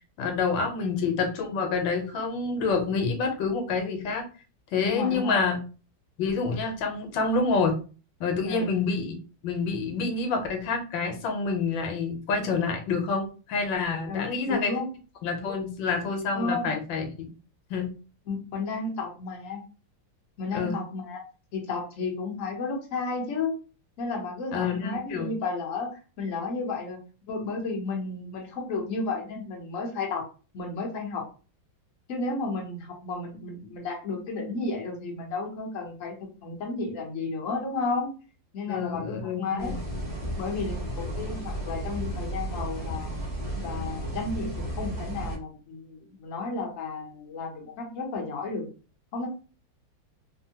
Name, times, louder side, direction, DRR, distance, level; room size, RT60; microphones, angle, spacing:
voice 1, 0.2-4.3 4.7-5.6 6.2-7.8 8.2-9.1 9.4-14.7 15.2-17.3 17.7-17.9 20.5-20.8 24.5-25.3 38.7-39.8, left 4 dB, 85° left, 4 dB, 1.4 m, -27 dB
voice 2, 4.8-5.4 8.5-8.7 14.1-14.9 16.3-16.7 18.3-19.6 20.4-21.2 21.5-23.6 24.0-25.9 26.2-27.0 27.3-30.2 30.5-31.2 32.1-36.1 36.4-38.1 38.5-39.7 40.3-43.1 43.6-48.7 49.1-49.3, left 3 dB, 50° left, 1 dB, 1.1 m, -32 dB
sound 1, 39.6-45.4, right 1 dB, 20° left, 0.6 m, -33 dB
3.4 x 2.1 x 2.8 m, 0.35 s
omnidirectional pair, 2.0 m